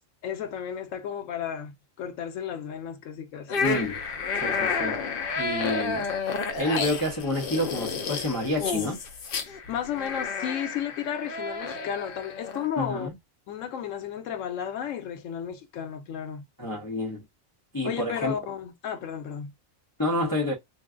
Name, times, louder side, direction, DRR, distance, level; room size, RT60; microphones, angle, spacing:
voice 1, 0.2-3.7 9.7-13.1 13.5-16.4 17.8-19.5, left 8 dB, 90° left, 1.0 m, -33 dB
sound 1, 3.5-12.7, left 4 dB, 55° left, 0.7 m, -31 dB
voice 2, 3.6-4.0 4.3-5.0 5.4-6.1 6.6-9.0 12.8-13.1 16.6-17.2 17.7-18.3 20.0-20.5, left 1 dB, 20° left, 0.7 m, -28 dB
2.6 x 2.2 x 3.6 m
omnidirectional pair, 1.3 m